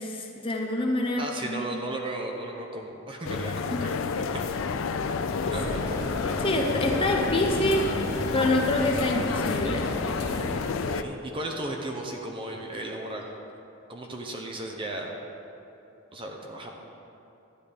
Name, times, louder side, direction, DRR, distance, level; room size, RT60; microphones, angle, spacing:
voice 1, 0.0-1.6 3.7-3.9 6.4-7.8 8.3-9.9, left 1 dB, 25° left, 1 dB, 0.8 m, -26 dB
voice 2, 1.2-4.1 5.5-6.0 10.6-13.3 13.9-15.1 16.1-16.7, right 1 dB, 25° right, 1 dB, 0.7 m, -35 dB
sound 1, 3.2-11.0, left 5 dB, 70° left, 0.4 m, -30 dB
sound 2, 5.3-10.7, left 1 dB, 50° left, 2.1 m, -34 dB
12.5 x 9.2 x 3.5 m, 2.8 s
head